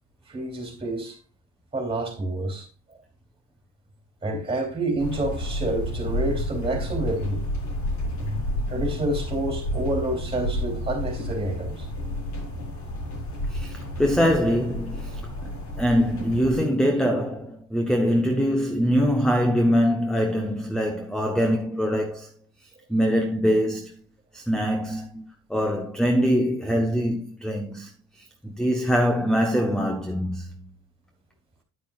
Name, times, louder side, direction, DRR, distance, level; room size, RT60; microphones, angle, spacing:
voice 1, 0.3-1.2 1.7-2.7 4.2-7.5 8.7-11.8, right 1 dB, 15° right, 3.1 m, -28 dB
sound 1, 5.0-16.6, left 1 dB, 55° left, 4.5 m, -31 dB
voice 2, 13.5-22.3 22.9-23.9 24.3-27.9 28.2-30.7, equal, ahead, 0.9 m, -23 dB
9.5 x 9.0 x 2.4 m
cardioid pair, 120°, 34 cm